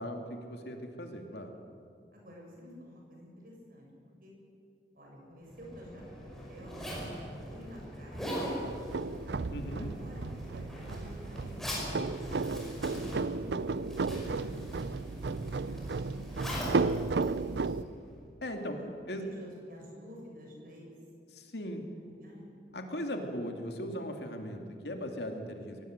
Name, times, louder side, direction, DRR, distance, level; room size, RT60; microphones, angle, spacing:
voice 1, 0.0-1.5 9.5-9.9 18.4-18.8 19.1-19.2 21.3-21.8 22.7-25.8, equal, 70° left, 4 dB, 2.6 m, -38 dB
voice 2, 2.1-3.8 4.2-4.3 4.9-6.8 7.4-8.6 9.2-9.4 9.7-15.3 15.6-15.9 16.5-17.7 18.7-18.9 19.2-21.0 22.0-22.6, left 1 dB, 50° right, -1 dB, 6.9 m, -51 dB
Zipper (clothing), 5.5-18.1, equal, ahead, 5.5 m, -41 dB
sound 1, 8.6-17.8, right 4 dB, 75° right, 0.5 m, -34 dB
23.5 x 18.0 x 8.1 m, 2.4 s
head